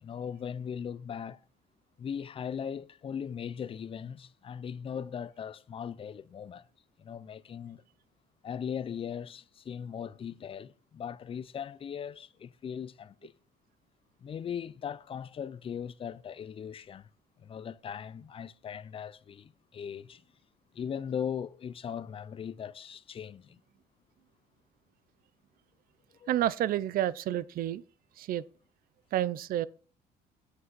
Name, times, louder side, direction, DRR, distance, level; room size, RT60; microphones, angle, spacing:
voice 1, 0.0-1.4 2.0-6.7 7.0-7.8 8.4-13.3 14.2-17.1 17.4-20.2 20.7-23.6 26.1-26.4, left 8 dB, 35° left, 0.5 m, -39 dB
voice 2, 26.3-27.8 28.2-28.4 29.1-29.7, right 12 dB, 60° right, 0.5 m, -29 dB
8.1 x 7.8 x 4.1 m
cardioid pair, 110°, 17 cm